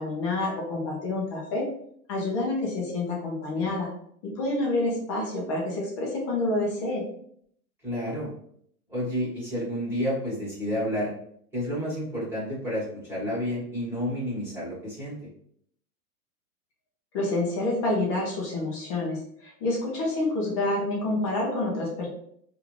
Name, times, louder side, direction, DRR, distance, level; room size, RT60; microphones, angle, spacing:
voice 1, 0.0-1.6 2.1-3.9 4.2-7.0 17.1-22.1, left 2 dB, 20° left, -3 dB, 0.5 m, -28 dB
voice 2, 7.8-8.3 8.9-11.1 11.5-15.2, equal, 5° right, -9 dB, 1.3 m, -30 dB
3.4 x 2.5 x 3.1 m, 0.66 s
supercardioid pair, 160°, 46 cm